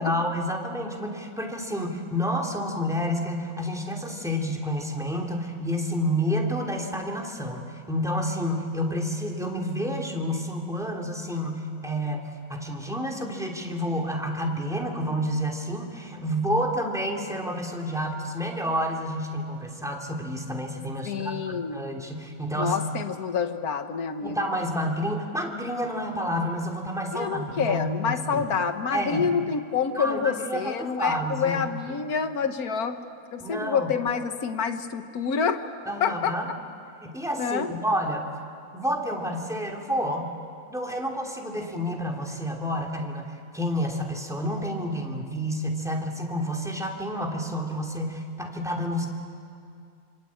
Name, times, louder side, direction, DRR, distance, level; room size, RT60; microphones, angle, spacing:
voice 1, 0.0-12.2 12.5-22.8 24.2-28.5 28.9-29.3 29.9-31.6 33.4-33.9 35.9-36.4 37.0-38.3 38.7-40.3 40.7-49.1, equal, ahead, 0 dB, 3.0 m, -29 dB
voice 2, 21.1-21.8 22.6-24.5 27.1-33.0 33.3-35.6 36.0-36.4 37.4-37.7, left 6 dB, 80° left, 8 dB, 1.7 m, -27 dB
26.5 x 26.0 x 8.7 m, 2.4 s
omnidirectional pair, 1.6 m